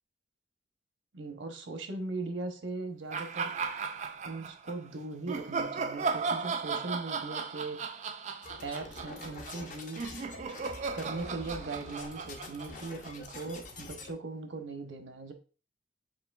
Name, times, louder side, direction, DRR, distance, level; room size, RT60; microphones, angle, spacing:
voice 1, 1.1-3.5 4.2-7.8 8.6-10.1 10.9-15.3, right 3 dB, 80° right, 5 dB, 0.9 m, -39 dB
sound 1, 3.1-4.8 5.3-13.5, right 4 dB, 35° right, 0.3 m, -36 dB
sound 2, 8.4-14.1, left 2 dB, 40° left, 0.7 m, -46 dB
7.4 x 2.9 x 2.3 m, 0.36 s
head